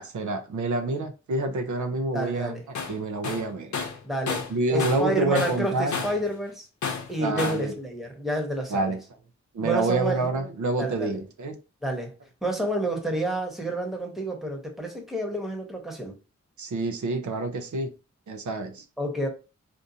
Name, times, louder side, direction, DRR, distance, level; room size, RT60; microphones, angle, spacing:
voice 1, 0.0-2.5 2.9-3.7 4.5-6.0 7.2-7.7 8.7-9.0 9.5-11.6 16.6-17.9 18.3-18.8, right 2 dB, 85° right, 0.7 m, -27 dB
voice 2, 2.1-2.6 4.0-4.4 4.7-6.7 7.1-9.0 9.6-10.2 10.8-11.2 11.8-12.1 12.4-16.2 19.0-19.3, right 1 dB, ahead, 1.0 m, -29 dB
Tools, 2.7-3.0 3.2-5.1 5.3-6.3 6.8-7.7, left 5 dB, 75° left, 0.7 m, -31 dB
3.6 x 2.6 x 2.7 m
wide cardioid pair, 75°, 29 cm